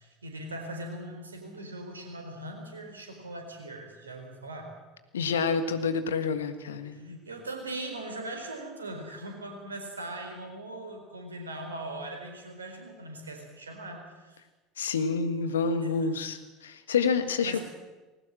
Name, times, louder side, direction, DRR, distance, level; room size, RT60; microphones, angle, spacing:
voice 1, 0.0-4.7 6.9-14.4 17.4-17.6, right 1 dB, 85° right, 3 dB, 4.3 m, -40 dB
voice 2, 5.1-7.2 14.8-17.6, left 5 dB, 75° left, 10 dB, 1.6 m, -28 dB
20.5 x 18.5 x 7.7 m, 1.2 s
figure-of-eight pair, 70°, 0 cm